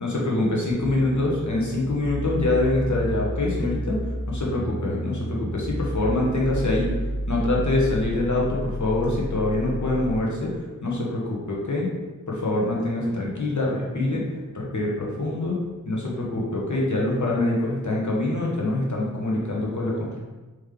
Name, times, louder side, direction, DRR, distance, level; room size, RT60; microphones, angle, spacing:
voice 1, 0.0-4.0 4.3-7.0 7.3-10.5 10.8-11.9 12.3-14.2 14.5-15.6 15.8-20.2, left 2 dB, 65° left, -4 dB, 1.0 m, -25 dB
sound 1, 0.7-10.3, equal, 60° right, 0.7 m, -31 dB
3.6 x 3.1 x 3.2 m, 1.2 s
wide cardioid pair, 60°, 32 cm